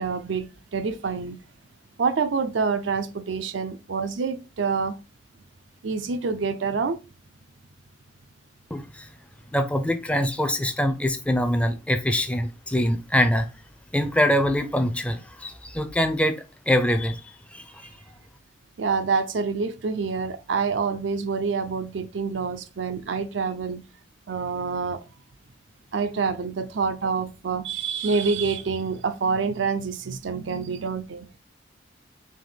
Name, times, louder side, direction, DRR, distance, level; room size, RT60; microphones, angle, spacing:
voice 1, 0.0-1.4 2.0-5.0 5.8-7.0 18.8-23.8 24.3-25.0 25.9-31.3, right 5 dB, 85° right, 0.5 m, -27 dB
voice 2, 8.7-9.0 9.5-13.5 13.9-17.2 17.5-17.6, equal, 5° left, 0.4 m, -24 dB
3.7 x 2.8 x 3.9 m
head